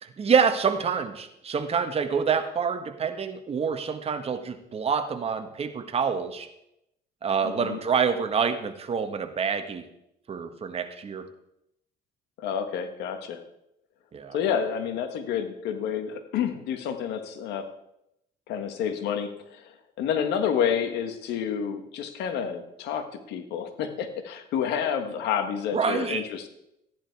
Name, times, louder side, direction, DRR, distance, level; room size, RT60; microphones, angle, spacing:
voice 1, 0.0-6.5 7.2-9.8 10.3-11.3 14.1-14.4 25.7-26.2, right 6 dB, 35° right, 7 dB, 1.4 m, -27 dB
voice 2, 7.4-7.8 12.4-13.4 14.3-17.7 18.5-19.7 20.0-26.5, left 8 dB, 85° left, 8 dB, 1.6 m, -29 dB
13.5 x 10.5 x 4.7 m, 0.82 s
cardioid pair, 110°, 17 cm